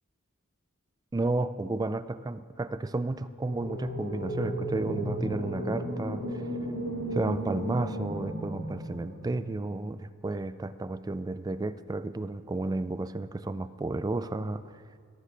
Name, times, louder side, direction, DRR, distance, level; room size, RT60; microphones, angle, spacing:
voice 1, 1.1-6.4 7.1-14.8, right 2 dB, 20° right, 13 dB, 0.3 m, -32 dB
sound 1, 3.4-9.6, right 1 dB, 60° left, 2.9 m, -35 dB
17.5 x 7.5 x 6.7 m, 2.2 s
head